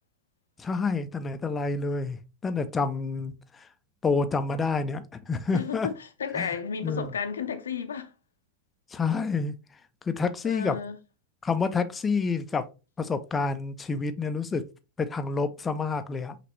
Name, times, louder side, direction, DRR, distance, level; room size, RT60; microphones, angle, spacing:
voice 1, 0.6-3.3 4.0-5.9 6.4-6.5 6.8-7.1 8.9-9.5 10.1-10.8 11.4-12.6 13.0-14.6 15.0-16.4, left 4 dB, 15° left, 0.5 m, -28 dB
voice 2, 5.5-8.1 10.4-11.0, left 6 dB, 70° left, 0.6 m, -33 dB
5.7 x 2.9 x 3.1 m
figure-of-eight pair, 90°, 0 cm